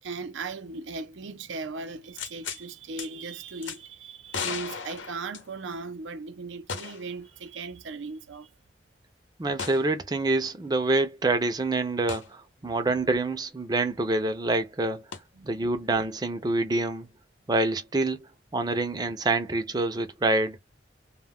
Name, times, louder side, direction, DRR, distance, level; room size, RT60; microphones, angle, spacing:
voice 1, 0.0-8.5 15.4-15.6, right 4 dB, 85° right, 0.5 m, -38 dB
sound 1, 2.2-2.6 3.0-3.1 3.6-3.8 4.3-5.8 6.7-7.1 7.5-7.6 9.6-9.9 12.1-12.3 15.1-15.2, left 6 dB, 90° left, 0.8 m, -35 dB
voice 2, 9.4-15.1 15.4-17.1 17.5-18.2 18.5-20.6, right 2 dB, 20° right, 0.4 m, -26 dB
2.2 x 2.2 x 3.4 m
head